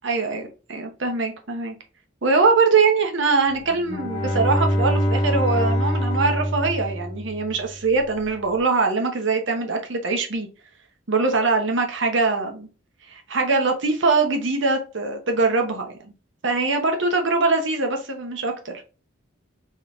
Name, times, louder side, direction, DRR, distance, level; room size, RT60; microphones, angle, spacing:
voice 1, 0.0-1.7 2.2-10.5 11.1-12.7 13.1-15.9 16.4-18.7, right 4 dB, 60° right, 3 dB, 1.0 m, -22 dB
Bowed string instrument, 3.7-7.8, equal, 25° left, 1.1 m, -24 dB
3.6 x 3.1 x 2.5 m, 0.34 s
head